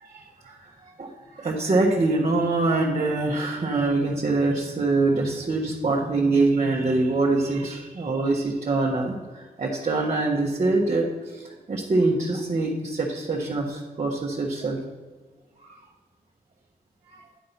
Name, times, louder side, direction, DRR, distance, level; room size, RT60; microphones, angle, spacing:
voice 1, 0.0-0.7 1.0-14.8 17.1-17.2, right 2 dB, 45° right, -3 dB, 1.3 m, -24 dB
10.5 x 3.8 x 5.7 m, 1.4 s
cardioid pair, 70°, 16 cm